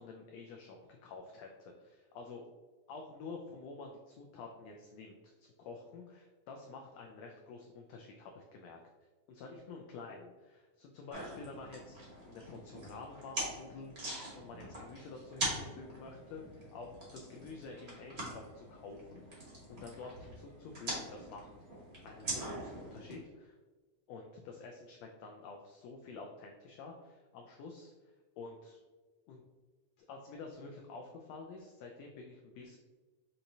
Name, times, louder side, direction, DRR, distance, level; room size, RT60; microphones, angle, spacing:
voice 1, 0.0-2.5 2.9-8.8 9.3-12.0 12.2-21.5 22.0-23.6 24.1-27.9 28.4-28.8 29.3-29.4 30.0-32.8, left 4 dB, 85° left, 2 dB, 1.5 m, -49 dB
sound 1, 11.1-23.1, right 1 dB, 75° right, 0.5 m, -43 dB
6.4 x 2.9 x 2.6 m, 1.3 s
omnidirectional pair, 3.5 m